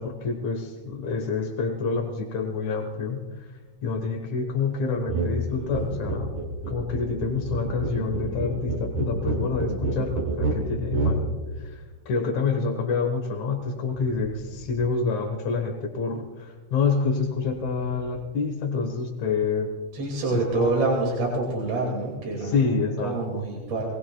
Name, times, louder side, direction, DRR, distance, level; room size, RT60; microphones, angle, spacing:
voice 1, 0.0-3.5 3.8-6.3 6.7-11.2 11.6-19.7 20.3-20.7 22.4-23.5, left 4 dB, 70° left, 1 dB, 1.7 m, -27 dB
sound 1, 5.1-5.3 5.6-11.2, right 2 dB, 55° right, 4.1 m, -28 dB
voice 2, 5.6-6.2 14.1-14.2 19.9-23.9, right 2 dB, 40° right, -1 dB, 2.7 m, -27 dB
23.5 x 19.5 x 2.3 m, 1.3 s
omnidirectional pair, 5.3 m